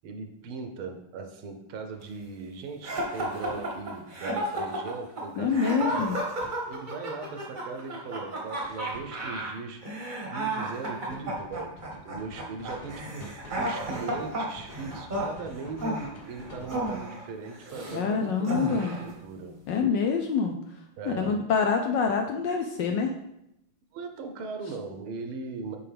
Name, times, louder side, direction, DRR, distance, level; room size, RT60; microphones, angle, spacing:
voice 1, 0.0-6.2 6.7-9.8 10.3-11.7 12.0-13.3 13.6-19.6 21.0-21.4 23.9-25.8, right 4 dB, 80° right, 5 dB, 1.7 m, -39 dB
sound 1, 1.9-2.0 3.5-3.7 6.1-6.5 8.6-9.1 11.1-17.1, equal, 45° left, 0.8 m, -46 dB
sound 2, 2.8-18.0 18.4-19.1, right 1 dB, 30° right, 0.9 m, -33 dB
voice 2, 5.4-6.2 17.9-19.0 19.7-20.5 21.1-23.1, left 5 dB, 75° left, 4 dB, 1.1 m, -26 dB
7.8 x 4.9 x 3.4 m, 0.81 s
omnidirectional pair, 2.4 m